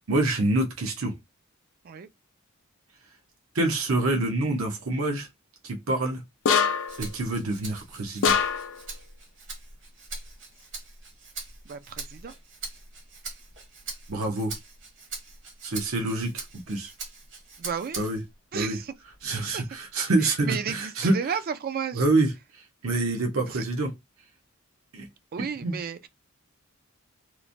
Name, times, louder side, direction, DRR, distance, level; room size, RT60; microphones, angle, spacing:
voice 1, 0.1-1.1 3.5-5.3 5.6-6.2 7.0-8.4 14.1-14.5 15.6-16.9 18.0-18.2 18.5-18.8 19.2-21.2 21.9-23.9 24.9-25.1 25.6-25.8, right 2 dB, 75° right, 0.8 m, -26 dB
sound 1, 6.5-7.0 8.2-8.8, left 6 dB, 65° left, 0.4 m, -23 dB
Rattle (instrument), 6.9-18.3 18.8-20.0, right 4 dB, 60° right, 1.2 m, -42 dB
voice 2, 11.7-12.3 17.6-18.0 18.5-18.9 19.5-19.7 20.4-22.0 23.5-23.6 25.3-26.1, right 7 dB, 45° right, 0.4 m, -33 dB
3.0 x 2.1 x 2.5 m
head